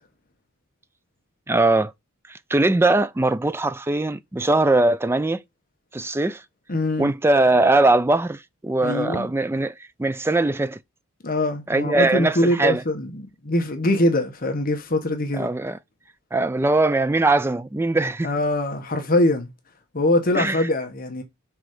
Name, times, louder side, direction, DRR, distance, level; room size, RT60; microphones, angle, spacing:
voice 1, 1.5-1.9 2.3-5.4 5.9-6.4 7.0-9.7 10.0-10.8 11.7-12.8 15.3-15.8 16.3-18.3 20.3-20.7, right 2 dB, 10° right, 0.3 m, -21 dB
voice 2, 6.7-7.1 8.8-9.3 11.2-13.1 13.4-15.5 18.2-19.5 19.9-21.2, left 1 dB, 40° left, 1.1 m, -23 dB
6.1 x 3.8 x 4.8 m
head